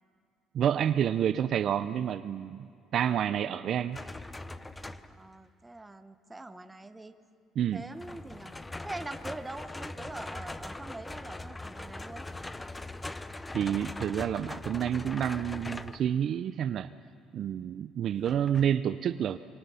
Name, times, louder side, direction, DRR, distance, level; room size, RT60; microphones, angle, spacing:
voice 1, 0.5-4.0 7.6-7.8 13.5-16.9 17.3-19.4, right 9 dB, 50° right, 13 dB, 0.4 m, -29 dB
sound 1, 3.9-5.3 8.0-16.1 18.3-18.7, left 2 dB, 10° left, 0.6 m, -41 dB
voice 2, 5.2-7.2 7.7-8.5 8.8-12.3, right 2 dB, 10° right, 9 dB, 0.9 m, -43 dB
25.0 x 23.5 x 5.6 m, 2.3 s
cardioid pair, 130°, 0 cm